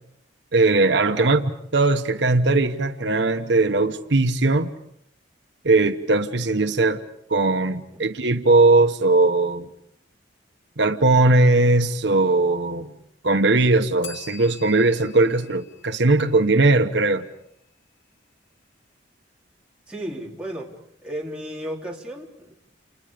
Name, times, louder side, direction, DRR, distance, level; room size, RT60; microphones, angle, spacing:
voice 1, 0.5-1.4 1.7-4.7 5.6-7.0 7.3-9.7 10.8-12.9 13.2-17.3, right 2 dB, 65° right, 6 dB, 1.1 m, -19 dB
voice 2, 1.0-1.4 19.9-20.8 21.0-22.5, right 1 dB, 5° right, -3 dB, 3.6 m, -34 dB
Bell, 14.0-16.8, left 7 dB, 75° left, 2.2 m, -44 dB
29.5 x 29.0 x 5.1 m, 0.73 s
head